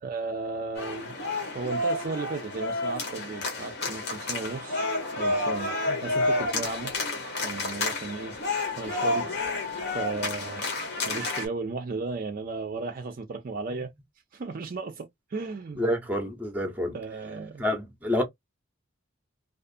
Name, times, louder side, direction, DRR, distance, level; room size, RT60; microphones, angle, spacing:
voice 1, 0.0-1.2 1.5-4.9 5.2-6.9 7.4-8.4 8.8-9.3 9.9-10.6 11.0-13.9 14.3-16.0 16.9-17.7, right 3 dB, 40° right, 0.4 m, -35 dB
sound 1, 0.8-11.5, left 2 dB, 50° left, 0.9 m, -30 dB
voice 2, 15.8-16.9 17.6-18.2, left 1 dB, 10° right, 0.7 m, -28 dB
2.4 x 2.4 x 2.5 m
head